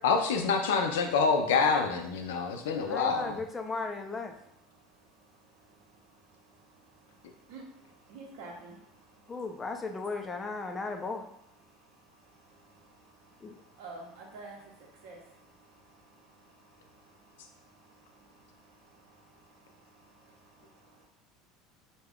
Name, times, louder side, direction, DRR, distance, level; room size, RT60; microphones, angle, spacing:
voice 1, 0.0-3.4, left 5 dB, 90° left, 5 dB, 0.4 m, -27 dB
voice 2, 2.3-2.7 3.6-3.7 4.3-10.9 11.6-21.1, right 3 dB, 75° right, 0 dB, 0.7 m, -53 dB
voice 3, 2.9-4.3 9.3-11.3 13.4-13.5, left 3 dB, 20° left, 5 dB, 0.4 m, -36 dB
2.3 x 2.2 x 3.4 m, 0.75 s
supercardioid pair, 105°, 0 cm